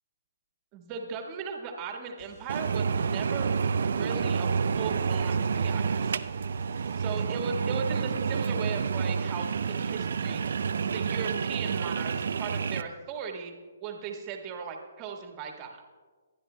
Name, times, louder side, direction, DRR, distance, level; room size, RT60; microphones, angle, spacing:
voice 1, 0.7-6.3 7.0-13.5 13.8-15.9, right 5 dB, 30° right, 2 dB, 1.5 m, -38 dB
sound 1, 2.2-7.3, left 1 dB, 35° left, 2.6 m, -53 dB
sound 2, 2.5-12.8, right 5 dB, 70° right, 0.4 m, -29 dB
23.5 x 10.0 x 2.2 m, 1.4 s
hypercardioid pair, 145°, 0 cm